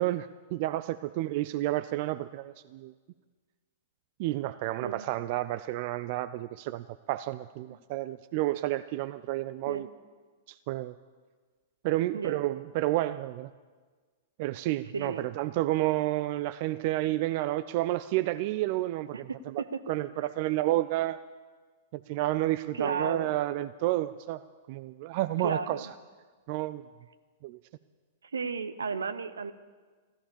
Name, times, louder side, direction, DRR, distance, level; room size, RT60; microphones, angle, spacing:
voice 1, 0.0-2.9 4.2-9.9 10.5-10.9 11.8-13.5 14.4-19.6 19.9-21.2 21.9-24.4 24.7-25.9 26.5-26.8 27.4-27.6, right 16 dB, 50° right, 13 dB, 0.4 m, -30 dB
voice 2, 12.1-12.4 14.9-15.3 19.1-19.8 22.7-23.3 25.4-25.8 28.3-29.5, right 5 dB, 75° right, 13 dB, 0.8 m, -34 dB
14.5 x 13.5 x 7.0 m, 1.4 s
figure-of-eight pair, 105°, 0 cm